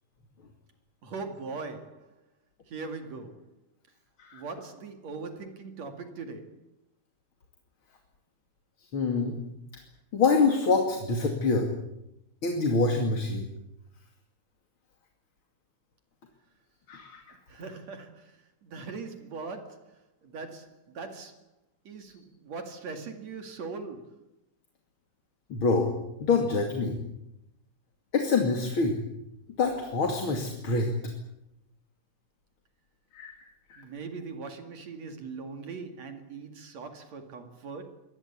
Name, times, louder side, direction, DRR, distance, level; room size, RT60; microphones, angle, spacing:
voice 1, 1.0-2.1 2.7-3.4 4.3-6.6 17.5-21.4 21.8-24.2 33.8-37.9, right 4 dB, 55° right, 3.3 m, -40 dB
voice 2, 8.9-9.4 10.1-11.7 12.4-13.5 16.9-17.2 25.5-25.9 26.2-27.0 28.1-29.0 29.6-30.9 33.1-33.3 33.7-33.8, left 4 dB, 40° left, 3.0 m, -25 dB
23.5 x 19.5 x 8.5 m
omnidirectional pair, 3.7 m